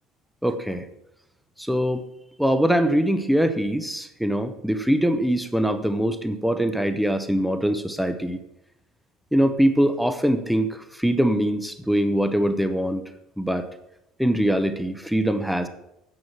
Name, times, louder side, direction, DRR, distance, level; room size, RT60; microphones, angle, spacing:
voice 1, 0.4-0.9 1.6-2.0 2.4-8.4 9.3-13.0 13.4-13.7 14.2-15.7, equal, ahead, 10 dB, 0.7 m, -23 dB
9.5 x 6.2 x 7.3 m, 0.85 s
cardioid pair, 140°, 0 cm